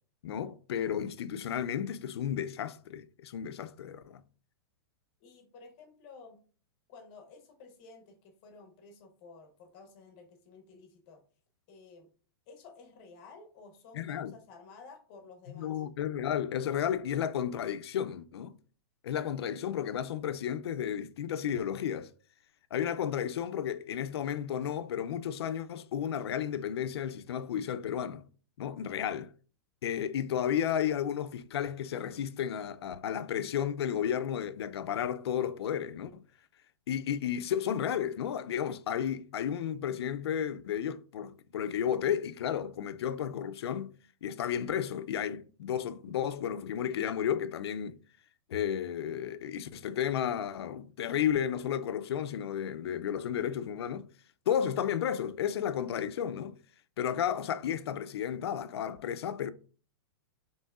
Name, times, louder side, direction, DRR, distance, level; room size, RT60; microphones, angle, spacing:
voice 1, 0.2-4.2 13.9-14.3 15.6-18.5 19.0-22.1 22.7-28.2 28.6-29.3 29.8-36.2 36.9-43.9 44.2-48.0 48.5-54.1 54.5-56.6 57.0-59.5, left 9 dB, 80° left, 0.4 m, -33 dB
voice 2, 5.2-6.4 6.9-11.2 11.7-12.1 12.5-15.8, left 4 dB, 25° left, 0.8 m, -53 dB
5.4 x 3.0 x 2.3 m
supercardioid pair, 180°, 13 cm